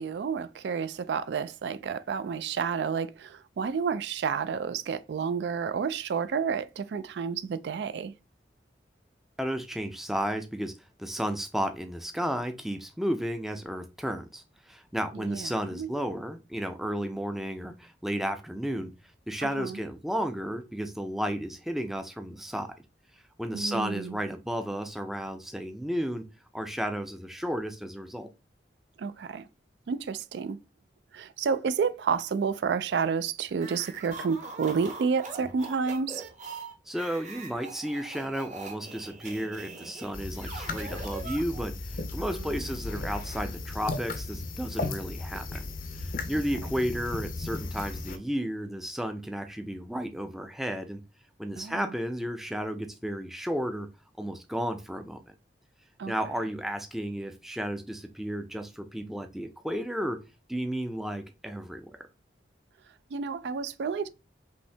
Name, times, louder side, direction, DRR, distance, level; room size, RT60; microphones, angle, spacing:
voice 1, 0.0-8.1 15.1-15.9 19.4-19.8 23.5-24.2 29.0-29.5 29.9-30.6 31.1-36.3 42.3-42.6 51.6-51.9 56.0-56.1 63.1-64.1, right 6 dB, 70° right, 0.3 m, -30 dB
voice 2, 9.4-10.7 11.0-18.9 19.3-22.7 23.4-26.2 26.5-28.3 36.9-45.6 46.0-51.0 51.4-53.9 54.2-55.2 56.1-60.2 60.5-61.9, equal, ahead, 0.4 m, -33 dB
sound 1, 33.5-41.8, right 3 dB, 40° right, 0.9 m, -43 dB
sound 2, 40.1-48.2, left 2 dB, 45° left, 0.5 m, -36 dB
5.4 x 2.7 x 3.3 m
head